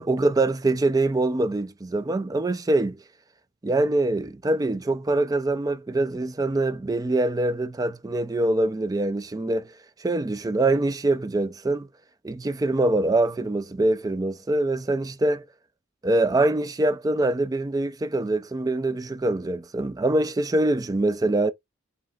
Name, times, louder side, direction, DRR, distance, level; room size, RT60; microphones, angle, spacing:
voice 1, 0.0-3.0 3.6-9.7 10.0-11.9 12.2-15.4 16.0-21.5, right 2 dB, 20° right, 0.3 m, -24 dB
7.5 x 2.8 x 2.4 m
head